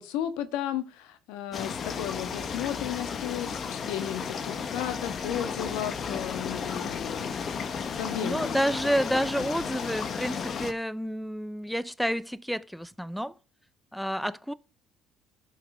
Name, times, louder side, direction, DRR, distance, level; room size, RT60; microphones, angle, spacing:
voice 1, 0.0-7.4 7.9-8.6, left 10 dB, 80° left, 1.4 m, -34 dB
sound 1, 1.5-10.7, left 6 dB, 45° left, 1.1 m, -34 dB
voice 2, 8.2-13.4 13.9-14.5, equal, ahead, 0.5 m, -29 dB
11.5 x 5.8 x 5.0 m
supercardioid pair, 90°, 0 cm